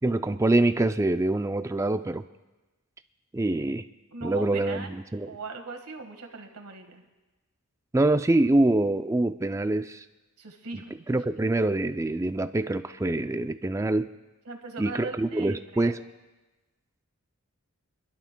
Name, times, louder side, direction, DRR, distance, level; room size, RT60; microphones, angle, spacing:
voice 1, 0.0-2.2 3.3-3.9 4.2-5.3 7.9-10.0 11.1-14.1 14.8-16.0, right 2 dB, 15° right, 10 dB, 0.3 m, -25 dB
voice 2, 4.1-5.0 5.3-7.1 10.4-11.0 14.4-15.9, right 3 dB, 90° right, 4 dB, 1.6 m, -39 dB
28.5 x 12.0 x 2.2 m, 1.1 s
head